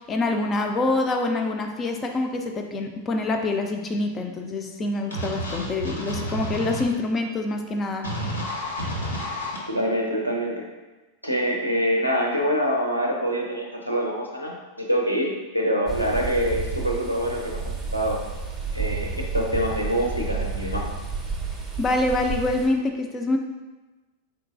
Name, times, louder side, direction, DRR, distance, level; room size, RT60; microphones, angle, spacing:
voice 1, 0.0-8.1 21.8-23.4, left 2 dB, 25° left, 4 dB, 0.5 m, -26 dB
sound 1, 5.1-6.8 8.0-9.6, equal, 75° left, 0.8 m, -30 dB
voice 2, 9.7-10.7 11.2-17.6 17.9-18.2 18.7-20.9, equal, 90° right, 0 dB, 0.6 m, -25 dB
sound 2, 15.9-22.7, right 4 dB, 15° right, 0.7 m, -31 dB
4.4 x 3.7 x 2.5 m, 1.2 s
figure-of-eight pair, 90°, 0 cm